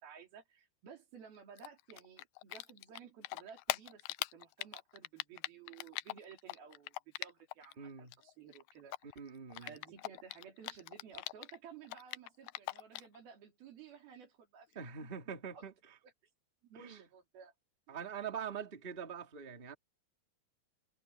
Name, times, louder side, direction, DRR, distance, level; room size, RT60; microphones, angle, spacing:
voice 1, 0.0-4.1 4.3-9.3 9.6-15.1 15.5-15.6 16.0-16.1 16.6-17.5 17.9-18.0, right 7 dB, 80° right, 5.2 m, -55 dB
Typing, 1.6-7.7 8.0-11.6 11.8-13.2, left 19 dB, 85° left, 2.5 m, -41 dB
voice 2, 7.8-8.1 9.0-9.8 14.7-15.9 16.7-17.0 17.9-19.7, right 7 dB, 20° right, 1.9 m, -44 dB
omnidirectional pair, 4.3 m